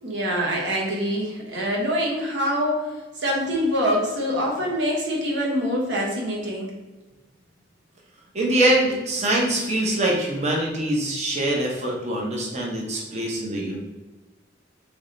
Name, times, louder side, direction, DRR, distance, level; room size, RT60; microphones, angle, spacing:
voice 1, 0.0-2.8 3.2-6.7, equal, 70° right, -2 dB, 1.1 m, -25 dB
voice 2, 8.3-13.8, right 1 dB, 40° right, -2 dB, 0.8 m, -23 dB
3.5 x 3.2 x 3.8 m, 1.2 s
head